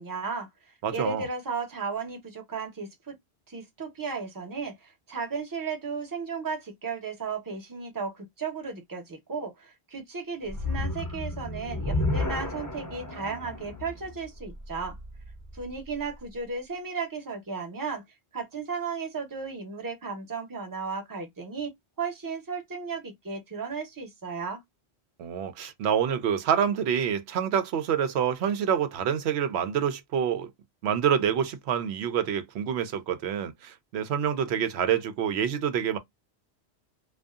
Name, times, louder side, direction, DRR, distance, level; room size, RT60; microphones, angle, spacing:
voice 1, 0.0-3.2 3.5-15.0 15.5-18.0 18.3-21.7 22.0-24.6, right 5 dB, 20° right, 0.8 m, -35 dB
voice 2, 0.8-1.3 25.2-30.5 30.8-36.0, right 8 dB, 80° right, 0.8 m, -27 dB
sound 1, 10.5-15.8, left 2 dB, 20° left, 0.6 m, -32 dB
2.6 x 2.3 x 2.3 m
omnidirectional pair, 1.1 m